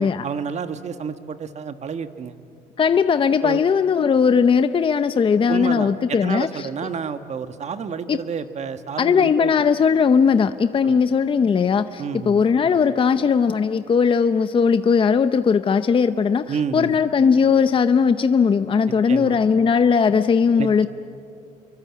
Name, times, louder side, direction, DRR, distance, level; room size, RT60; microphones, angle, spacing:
voice 1, 0.0-2.3 3.4-3.6 5.5-9.5 10.8-11.0 12.0-12.5 16.5-16.9 19.1-19.4 20.6-20.9, right 6 dB, 40° right, 1.5 m, -30 dB
voice 2, 2.8-6.5 8.1-8.2 9.0-20.9, left 6 dB, 30° left, 0.7 m, -18 dB
29.5 x 23.5 x 8.6 m
cardioid pair, 110°, 17 cm